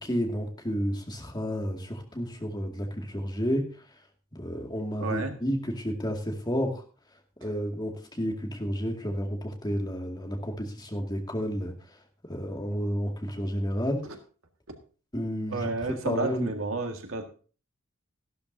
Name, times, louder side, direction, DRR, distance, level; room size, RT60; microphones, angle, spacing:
voice 1, 0.0-3.7 4.3-6.8 7.4-11.7 12.3-14.0 15.1-15.7 16.0-16.5, equal, 20° left, 2 dB, 2.2 m, -31 dB
voice 2, 5.0-5.3 14.0-14.2 15.5-17.3, right 3 dB, 80° right, 5 dB, 1.9 m, -31 dB
14.5 x 12.0 x 2.7 m, 0.38 s
head